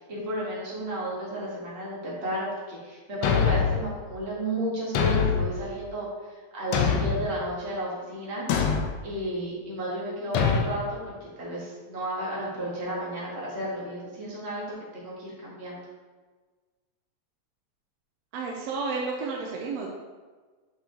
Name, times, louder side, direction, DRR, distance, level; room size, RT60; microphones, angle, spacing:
voice 1, 0.0-8.5 9.0-11.1 11.4-15.8, right 1 dB, 30° right, -6 dB, 1.3 m, -33 dB
Thump thud, 3.2-3.8 4.9-5.5 6.7-7.3 8.5-8.9 10.3-10.7, left 6 dB, 75° left, 1.5 m, -23 dB
voice 2, 18.3-19.9, right 4 dB, 75° right, -1 dB, 1.6 m, -31 dB
6.1 x 6.0 x 3.0 m, 1.4 s
omnidirectional pair, 3.3 m